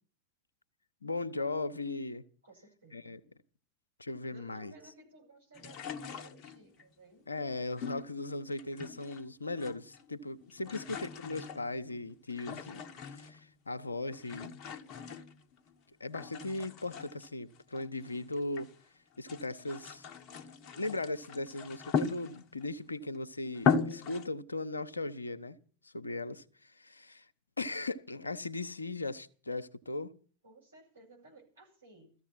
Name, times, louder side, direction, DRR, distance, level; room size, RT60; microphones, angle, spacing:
voice 1, 1.0-2.2 2.9-3.2 4.0-4.7 7.3-12.8 13.1-14.6 16.0-18.7 19.2-20.1 20.8-25.6 25.8-27.2 27.6-30.1, left 2 dB, 80° left, 0.9 m, -38 dB
voice 2, 2.4-3.2 4.3-7.3 10.6-10.8 30.4-32.2, right 2 dB, 75° right, 7.2 m, -57 dB
sound 1, 5.5-6.8 7.8-9.2 9.5-10.1 10.4-13.5 14.1-15.7 16.1-18.8 19.1-22.7 23.1-23.2 23.5-24.3, left 6 dB, 35° left, 1.1 m, -38 dB
16.5 x 14.0 x 5.8 m
figure-of-eight pair, 90°, 0 cm